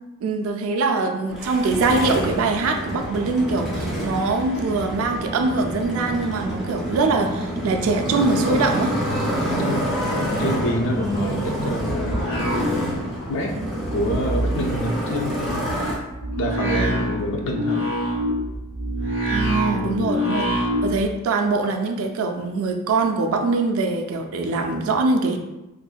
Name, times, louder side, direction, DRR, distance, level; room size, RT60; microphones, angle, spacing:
voice 1, 0.2-8.9 19.3-25.4, right 3 dB, 70° right, 4 dB, 0.3 m, -23 dB
Motorcycle, 1.3-16.0, right 1 dB, ahead, 0.4 m, -27 dB
voice 2, 9.6-12.7 13.3-13.5 13.9-15.8 16.4-17.8 19.7-20.1, equal, 60° left, 2 dB, 0.4 m, -27 dB
sound 1, 11.7-13.3 13.6-21.0, equal, 40° left, 1.0 m, -26 dB
2.5 x 2.1 x 2.3 m, 1.0 s
head